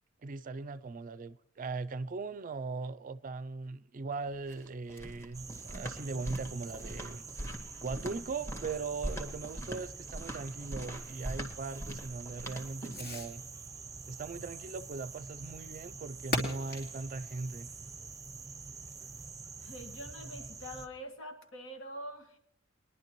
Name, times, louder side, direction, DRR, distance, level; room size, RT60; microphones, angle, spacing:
voice 1, 0.2-7.2 7.8-13.4 14.1-17.7, right 3 dB, 45° right, 0.4 m, -39 dB
Fireworks, 4.2-18.8, left 1 dB, 50° left, 2.8 m, -46 dB
sound 1, 4.3-13.2, equal, 15° left, 1.8 m, -42 dB
sound 2, 5.3-20.9, right 4 dB, 15° right, 0.8 m, -46 dB
voice 2, 19.6-22.4, equal, 70° left, 1.9 m, -45 dB
22.0 x 11.0 x 3.1 m
head